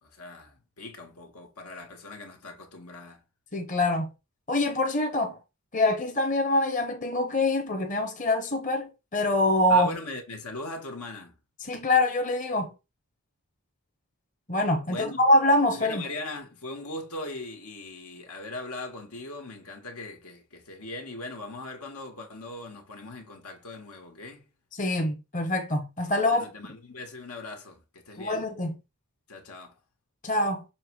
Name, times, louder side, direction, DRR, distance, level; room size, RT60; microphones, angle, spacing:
voice 1, 0.0-3.2 9.7-11.4 14.9-15.2 15.8-24.5 26.3-28.5 29.3-29.8, left 2 dB, 85° left, 1.9 m, -40 dB
voice 2, 3.5-4.1 4.5-5.4 5.7-9.9 11.6-12.7 14.5-16.0 24.8-26.5 28.2-28.7 30.2-30.6, left 1 dB, 35° left, 1.0 m, -25 dB
6.9 x 3.4 x 4.8 m
head